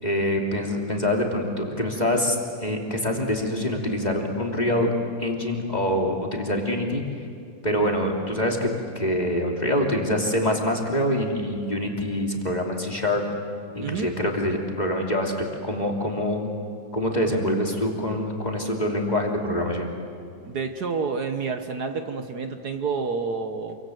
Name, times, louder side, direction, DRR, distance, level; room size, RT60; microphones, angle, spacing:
voice 1, 0.0-4.9 5.2-7.0 7.6-13.2 13.7-16.5 16.9-19.9, left 1 dB, 20° left, 0 dB, 3.0 m, -25 dB
voice 2, 13.8-14.1 20.5-23.8, right 5 dB, 60° right, 6 dB, 1.6 m, -29 dB
28.0 x 25.0 x 7.9 m, 2.4 s
omnidirectional pair, 2.1 m